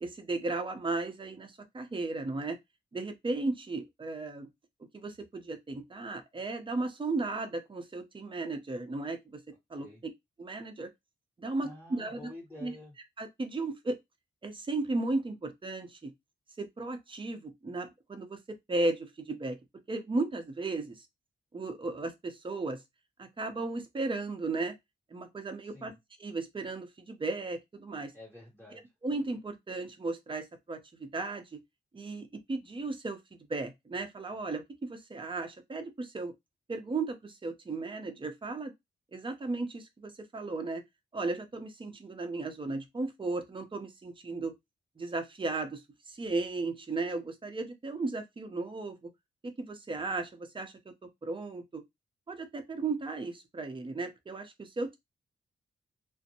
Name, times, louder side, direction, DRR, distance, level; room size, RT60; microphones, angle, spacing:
voice 1, 0.0-2.6 2.9-4.5 4.9-9.4 9.7-9.9 10.4-10.9 11.4-12.3 12.6-12.7 13.2-14.0 14.4-16.1 16.6-18.4 18.7-19.6 19.9-21.1 21.5-22.8 23.2-24.7 25.1-25.9 26.2-28.1 29.0-31.6 31.9-36.3 36.7-38.7 39.1-40.8 41.1-44.5 45.0-45.8 46.1-49.1 49.4-50.7 51.2-51.8 52.3-55.0, right 3 dB, 25° right, 0.7 m, -35 dB
voice 2, 11.6-12.9 25.7-26.0 28.1-28.9, left 1 dB, 10° left, 1.3 m, -49 dB
2.5 x 2.1 x 2.8 m
cardioid pair, 70°, 19 cm